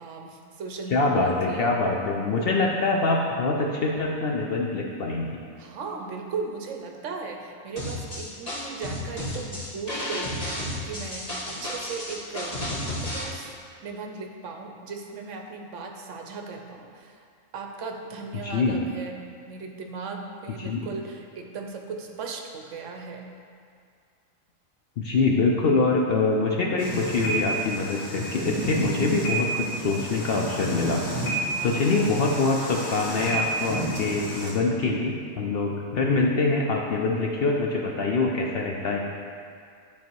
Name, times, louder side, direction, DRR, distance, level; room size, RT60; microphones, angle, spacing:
voice 1, 0.0-1.8 5.6-13.5 13.8-17.3 17.5-23.3 31.5-31.9, right 4 dB, 65° right, 3 dB, 1.0 m, -37 dB
voice 2, 0.9-5.3 18.4-18.8 20.6-20.8 25.0-31.0 31.6-39.0, left 3 dB, 55° left, -1 dB, 0.7 m, -24 dB
sound 1, 7.8-13.2, left 1 dB, 30° left, 1.5 m, -32 dB
sound 2, 26.8-34.5, right 1 dB, 90° left, 2.2 m, -31 dB
11.0 x 3.6 x 4.6 m, 2.2 s
omnidirectional pair, 1.4 m